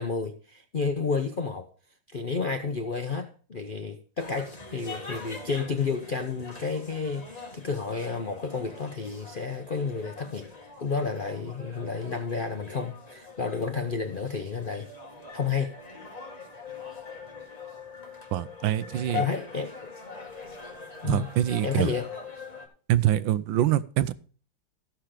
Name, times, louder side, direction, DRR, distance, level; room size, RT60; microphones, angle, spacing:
voice 1, 0.0-1.7 2.1-10.5 10.8-14.9 15.3-15.8 19.1-19.9 21.0-21.3 21.6-22.1, left 5 dB, 60° left, 0.5 m, -31 dB
sound 1, 4.2-22.7, left 4 dB, 20° left, 1.9 m, -42 dB
voice 2, 18.3-19.2 21.0-21.9 22.9-24.1, right 12 dB, 80° right, 1.4 m, -25 dB
13.5 x 6.0 x 5.0 m
omnidirectional pair, 2.1 m